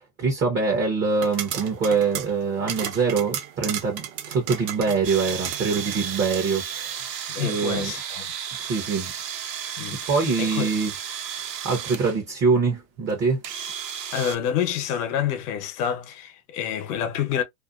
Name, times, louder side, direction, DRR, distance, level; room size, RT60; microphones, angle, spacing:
voice 1, 0.2-6.9 7.4-7.9 8.6-9.1 10.1-10.9 11.6-13.4, right 4 dB, 25° right, 0.8 m, -24 dB
sound 1, 1.1-6.4, right 10 dB, 60° right, 1.0 m, -34 dB
sound 2, 5.0-12.2 13.1-13.2 13.4-14.4, right 8 dB, 80° right, 0.9 m, -33 dB
voice 2, 7.3-8.3 9.8-10.0 10.4-10.7 14.1-17.4, left 9 dB, 70° left, 1.0 m, -27 dB
2.6 x 2.1 x 2.4 m
supercardioid pair, 125°, 48 cm